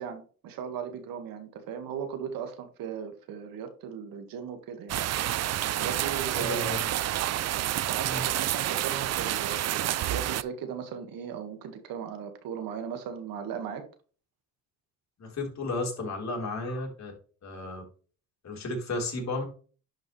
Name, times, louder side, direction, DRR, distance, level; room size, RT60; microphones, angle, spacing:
voice 1, 0.0-5.0 5.8-6.8 7.9-13.8, right 7 dB, 85° right, 1.8 m, -37 dB
sound 1, 4.9-10.4, right 13 dB, 50° right, 0.4 m, -29 dB
voice 2, 6.4-6.8 8.0-8.2 15.2-17.1 17.4-17.8 18.4-19.5, left 2 dB, 55° left, 3.9 m, -33 dB
11.0 x 5.4 x 3.2 m
cardioid pair, 95°, 34 cm